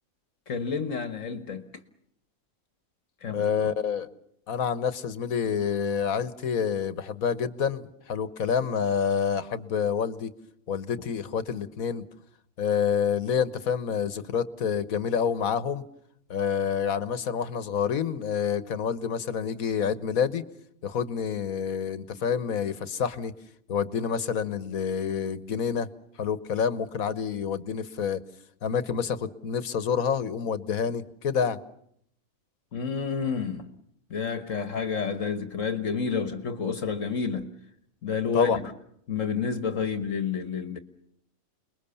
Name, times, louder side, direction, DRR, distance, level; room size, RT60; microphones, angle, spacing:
voice 1, 0.5-1.7 3.2-3.7 32.7-33.7 34.1-37.5 38.0-38.6 39.1-40.8, left 6 dB, 65° left, 1.8 m, -29 dB
voice 2, 3.3-4.1 4.5-10.3 10.7-12.0 12.6-15.8 16.3-20.4 20.8-23.3 23.7-25.9 26.2-28.2 28.6-31.6 38.3-38.6, left 7 dB, 85° left, 1.7 m, -28 dB
29.5 x 21.5 x 7.0 m
omnidirectional pair, 1.4 m